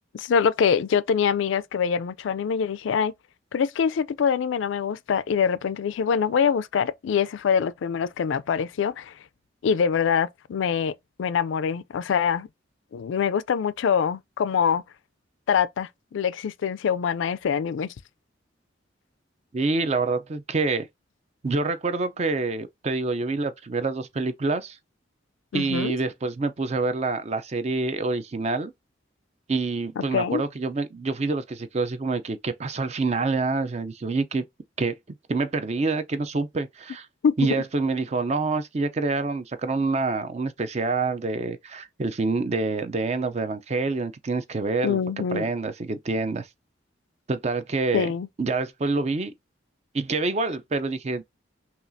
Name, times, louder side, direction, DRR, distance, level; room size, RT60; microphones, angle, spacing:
voice 1, 0.1-3.1 3.5-9.1 9.6-10.9 11.2-12.5 12.9-14.8 15.5-17.9 25.5-26.0 30.0-30.4 37.2-37.6 44.8-45.5 47.9-48.3, left 7 dB, 75° left, 0.3 m, -24 dB
voice 2, 19.5-20.9 21.4-24.8 25.5-28.7 29.5-34.4 34.8-35.0 35.3-37.1 37.4-46.5 47.3-48.1 48.4-49.3 49.9-51.2, right 3 dB, 35° right, 0.4 m, -27 dB
5.7 x 2.4 x 2.6 m
head